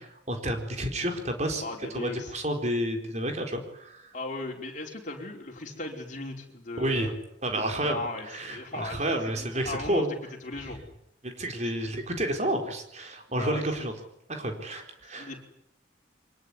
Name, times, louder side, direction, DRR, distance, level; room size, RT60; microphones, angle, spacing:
voice 1, 0.0-1.6 1.9-4.1 6.8-7.1 7.4-10.1 11.2-13.9 14.3-15.4, right 1 dB, 40° right, 4 dB, 4.2 m, -30 dB
voice 2, 1.6-2.3 4.1-7.1 7.5-10.1 10.4-10.8 11.8-11.9 13.3-13.6 15.2-15.4, left 2 dB, 40° left, 1 dB, 4.9 m, -37 dB
24.0 x 20.5 x 10.0 m, 0.75 s
head